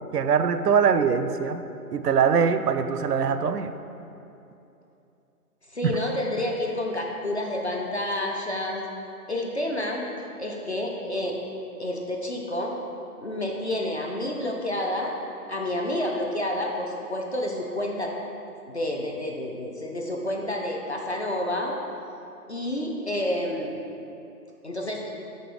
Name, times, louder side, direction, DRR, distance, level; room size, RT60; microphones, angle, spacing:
voice 1, 0.1-1.6 1.9-3.7 5.8-5.9, right 6 dB, 85° right, 10 dB, 0.6 m, -22 dB
voice 2, 5.7-8.8 9.3-10.1 10.4-11.4 11.8-12.8 13.2-15.1 15.5-18.1 18.7-21.8 22.5-23.8 24.6-25.1, left 1 dB, 45° left, 0 dB, 0.6 m, -29 dB
5.3 x 4.2 x 6.0 m, 2.7 s
hypercardioid pair, 175°, 46 cm